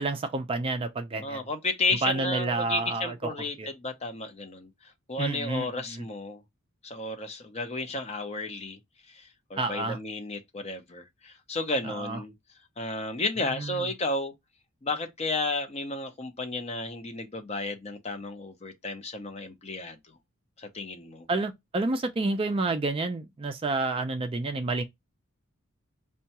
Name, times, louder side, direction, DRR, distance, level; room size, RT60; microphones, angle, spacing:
voice 1, 0.0-1.4 2.0-3.3 3.6-3.7 5.2-6.0 9.6-10.0 11.8-12.2 13.6-13.8 21.3-24.8, right 3 dB, 25° right, 0.3 m, -29 dB
voice 2, 1.2-6.4 6.8-8.8 9.1-12.3 12.8-14.3 14.8-20.0 20.6-21.3, left 2 dB, 30° left, 0.7 m, -33 dB
5.4 x 2.2 x 2.7 m
head